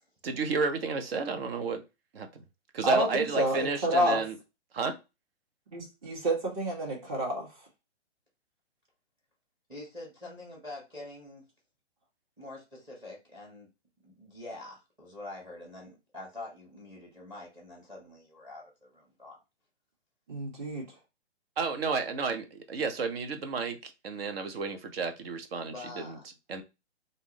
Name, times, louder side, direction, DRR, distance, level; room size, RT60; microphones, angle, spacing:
voice 1, 0.2-1.8 2.1-2.4 2.7-4.4 4.7-5.0 21.6-26.2 26.5-26.6, right 4 dB, 55° right, 0.9 m, -31 dB
voice 2, 2.8-4.2 5.7-7.5 20.3-21.0, equal, 30° right, 1.5 m, -29 dB
voice 3, 9.7-11.4 12.4-13.7 14.0-19.4 25.7-26.3, left 2 dB, 10° right, 1.2 m, -45 dB
3.5 x 2.6 x 3.0 m
hypercardioid pair, 145°, 35 cm